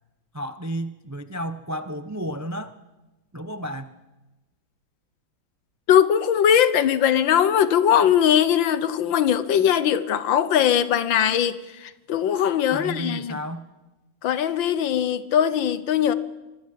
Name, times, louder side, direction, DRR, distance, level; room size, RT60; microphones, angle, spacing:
voice 1, 0.3-2.8 3.3-3.9 12.7-13.6, equal, 20° right, 0.4 m, -32 dB
voice 2, 5.9-13.4 14.2-16.1, left 9 dB, 75° left, 1.8 m, -20 dB
26.0 x 20.5 x 7.7 m
omnidirectional pair, 2.1 m